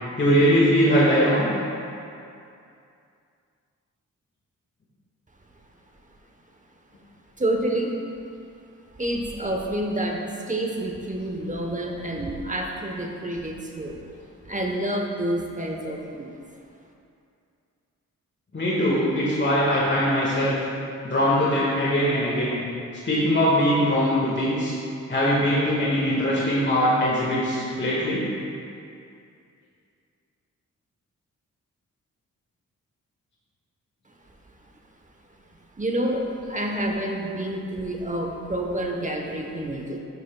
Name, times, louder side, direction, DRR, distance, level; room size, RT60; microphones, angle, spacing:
voice 1, 0.2-1.5 18.5-20.6 21.0-22.6 23.0-24.7 25.1-28.2, equal, 35° left, -6 dB, 1.6 m, -21 dB
voice 2, 7.4-7.9 9.0-14.0 14.4-16.4 35.8-40.0, right 1 dB, 25° right, 1 dB, 0.9 m, -28 dB
10.5 x 6.4 x 2.2 m, 2.5 s
cardioid pair, 65°, 32 cm